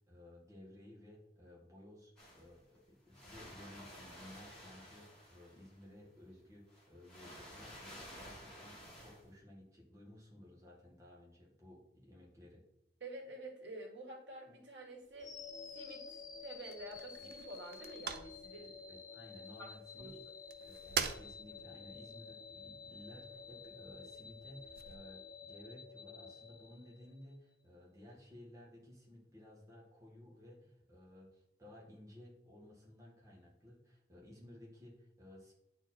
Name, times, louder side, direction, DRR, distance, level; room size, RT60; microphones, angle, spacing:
voice 1, 0.1-12.6 17.2-17.3 18.6-20.1 20.6-35.5, left 1 dB, 20° right, -4 dB, 2.0 m, -56 dB
sound 1, 2.2-2.8 3.1-5.8 6.7-9.2, equal, 5° left, 2.7 m, -53 dB
voice 2, 13.0-15.4 15.7-18.8 19.6-19.7 20.0-20.2, right 2 dB, 90° right, 0 dB, 1.9 m, -49 dB
sound 2, 15.0-25.0, right 7 dB, 60° right, 0.6 m, -47 dB
sound 3, 15.2-27.3, left 5 dB, 20° left, 0.7 m, -51 dB
9.7 x 4.5 x 4.4 m, 0.79 s
head